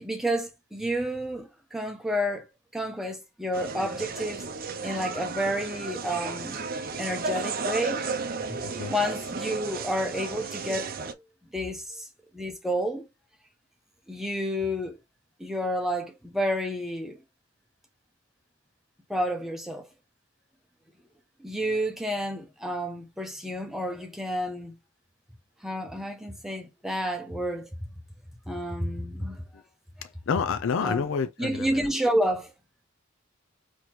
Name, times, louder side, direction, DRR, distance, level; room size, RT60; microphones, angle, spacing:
voice 1, 0.0-2.4 2.7-4.4 4.8-6.6 7.0-8.0 8.9-10.9 11.5-12.1 12.3-13.1 14.1-15.0 15.4-17.2 19.1-19.9 21.4-24.7 25.6-27.7 28.5-29.6 30.8-31.1 31.4-32.5, equal, ahead, 0.9 m, -30 dB
sound 1, 3.5-11.1, right 4 dB, 45° right, 0.6 m, -33 dB
voice 2, 30.3-31.7, left 6 dB, 60° left, 0.4 m, -28 dB
4.0 x 3.0 x 3.0 m
head